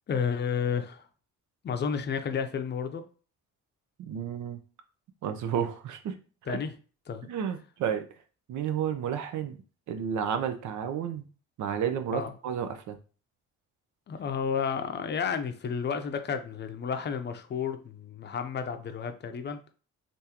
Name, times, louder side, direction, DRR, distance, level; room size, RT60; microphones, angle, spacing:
voice 1, 0.1-1.1 1.6-3.0 6.5-6.7 7.1-7.3 12.1-12.3 14.1-19.6, left 6 dB, 35° left, 0.5 m, -31 dB
voice 2, 4.0-4.6 5.2-6.2 6.5-6.6 7.3-8.1 8.5-9.6 9.9-11.2 11.6-13.0, right 8 dB, 75° right, 0.6 m, -31 dB
3.6 x 2.6 x 2.8 m
cardioid pair, 90°, 30 cm